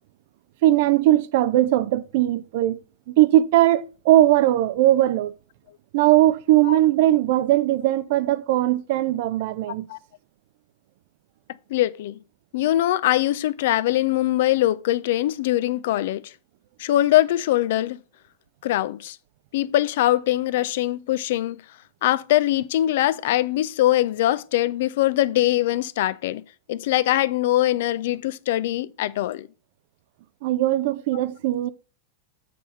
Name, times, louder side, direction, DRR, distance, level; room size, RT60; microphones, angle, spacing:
voice 1, 0.6-2.8 3.1-5.3 5.9-9.9 30.4-31.7, right 14 dB, 50° right, 0.4 m, -19 dB
voice 2, 11.7-12.2 12.5-16.3 16.8-18.0 18.6-19.2 19.5-21.6 22.0-26.4 26.7-29.5, left 14 dB, 55° left, 0.4 m, -22 dB
7.5 x 4.1 x 5.5 m
figure-of-eight pair, 90°, 0 cm